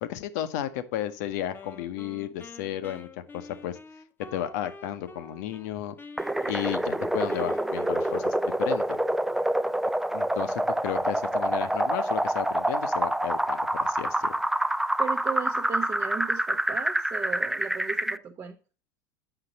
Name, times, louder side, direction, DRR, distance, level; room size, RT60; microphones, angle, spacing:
voice 1, 0.0-3.8 4.3-6.0 6.5-9.0 10.1-14.4, left 11 dB, 65° left, 11 dB, 0.9 m, -33 dB
Wind instrument woodwind instrument, 1.5-5.7 6.0-8.9, left 4 dB, 20° left, 0.8 m, -47 dB
sound 1, 6.2-18.2, right 1 dB, 5° right, 0.3 m, -27 dB
voice 2, 15.0-18.6, right 6 dB, 30° right, 1 dB, 0.9 m, -36 dB
8.0 x 5.8 x 4.0 m, 0.36 s
hypercardioid pair, 75°, 10 cm